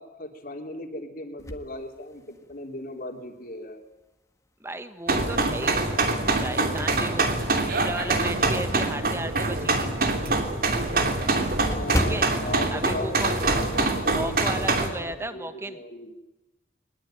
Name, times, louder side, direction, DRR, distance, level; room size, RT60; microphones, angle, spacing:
voice 1, 0.0-3.8 11.6-16.2, left 1 dB, 50° left, 4 dB, 3.5 m, -38 dB
sound 1, 1.4-2.7 3.3-3.4 4.8-5.3 5.8-8.5 8.9-9.0 9.4-9.5 9.8-9.9 10.1-13.9 14.2-14.4 14.7-15.3, equal, 15° left, 1.7 m, -36 dB
voice 2, 4.6-5.9 6.4-7.3 7.7-9.9 11.9-12.3 12.7-13.3 14.1-15.8, right 1 dB, 15° right, 10 dB, 1.4 m, -34 dB
sound 2, 5.1-14.9, right 2 dB, 50° right, 3.0 m, -25 dB
22.0 x 20.5 x 9.2 m, 1.0 s
head